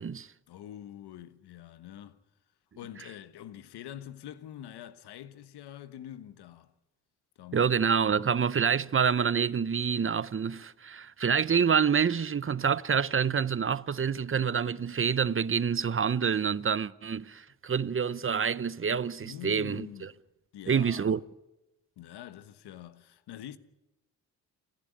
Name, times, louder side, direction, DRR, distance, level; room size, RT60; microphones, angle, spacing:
voice 1, 0.5-2.2 2.8-6.7 7.4-8.0 19.2-20.1 20.5-21.2 22.0-23.6, left 11 dB, 85° left, 1.3 m, -45 dB
voice 2, 7.5-20.1 20.7-21.2, right 6 dB, 35° right, 0.8 m, -27 dB
29.5 x 10.5 x 9.4 m
cardioid pair, 70°, 38 cm